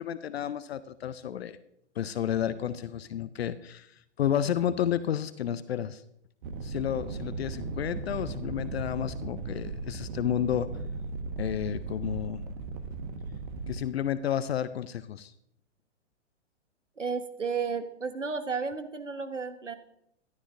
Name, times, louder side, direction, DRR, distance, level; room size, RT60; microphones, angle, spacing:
voice 1, 0.0-1.6 2.0-6.0 6.6-10.7 11.4-12.5 13.7-15.3, left 10 dB, 60° left, 15 dB, 0.6 m, -31 dB
sound 1, 6.4-13.8, right 3 dB, 45° right, 1.4 m, -37 dB
voice 2, 17.0-19.7, right 5 dB, 90° right, 9 dB, 1.3 m, -33 dB
14.0 x 12.0 x 2.6 m, 0.75 s
figure-of-eight pair, 115°, 36 cm